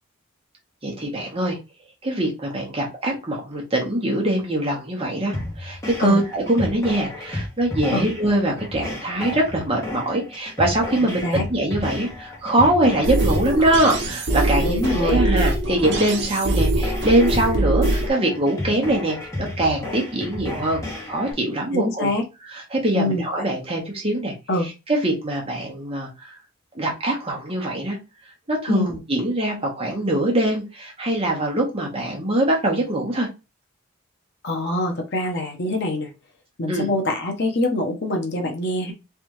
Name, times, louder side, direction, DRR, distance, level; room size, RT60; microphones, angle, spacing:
voice 1, 0.8-1.6 2.0-20.8 21.1-22.1 22.5-24.3 24.6-26.3 26.7-28.0 28.5-33.3 36.7-36.9, right 1 dB, 25° right, -1 dB, 1.2 m, -23 dB
sound 1, 5.3-21.3, left 1 dB, 15° left, 1.4 m, -32 dB
voice 2, 11.0-11.5 14.6-15.2 21.7-22.2 22.9-23.2 24.5-24.7 28.7-28.9 34.4-36.1 36.6-38.9, left 1 dB, 50° left, 2 dB, 1.0 m, -24 dB
sound 2, 13.0-18.1, right 2 dB, 55° right, 0.9 m, -23 dB
3.5 x 3.3 x 3.1 m, 0.27 s
head